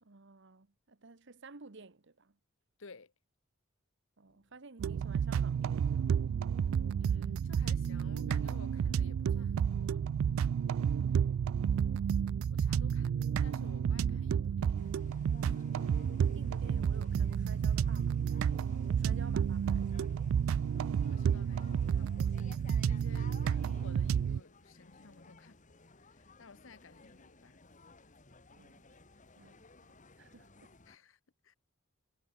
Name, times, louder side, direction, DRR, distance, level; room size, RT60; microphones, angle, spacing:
voice 1, 0.0-2.4 4.2-5.9 11.1-11.8 16.3-18.2 19.0-20.5 23.2-23.5 28.5-28.8 29.4-30.7, right 3 dB, 60° right, 1.2 m, -54 dB
voice 2, 2.8-3.1 7.0-10.1 12.5-14.8 21.0-22.4 22.8-25.6 26.1-27.7 30.9-31.6, left 4 dB, 70° left, 1.0 m, -56 dB
sound 1, 4.3-22.0, left 1 dB, 20° left, 6.2 m, -75 dB
sound 2, 4.8-24.4, right 7 dB, 80° right, 0.3 m, -31 dB
sound 3, 14.8-31.0, left 3 dB, 40° left, 2.2 m, -57 dB
head